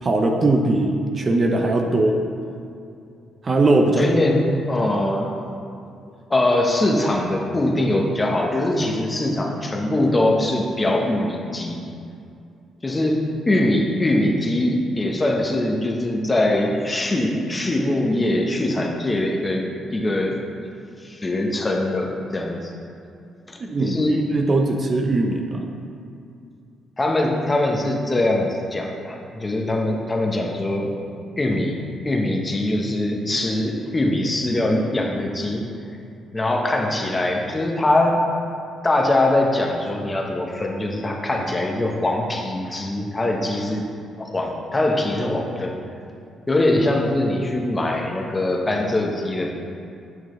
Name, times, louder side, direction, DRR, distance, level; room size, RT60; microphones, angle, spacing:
voice 1, 0.0-2.1 3.4-4.1 23.6-25.7, right 2 dB, 40° right, 3 dB, 0.7 m, -20 dB
voice 2, 4.0-5.5 6.3-11.8 12.8-19.6 19.9-20.4 21.0-22.7 23.5-24.2 27.0-31.0 31.4-31.8 32.0-35.6 36.3-38.2 38.8-43.8 44.2-45.8 46.5-49.5, left 1 dB, 20° left, 1 dB, 0.9 m, -22 dB
8.9 x 6.2 x 3.2 m, 2.5 s
cardioid pair, 90°, 0 cm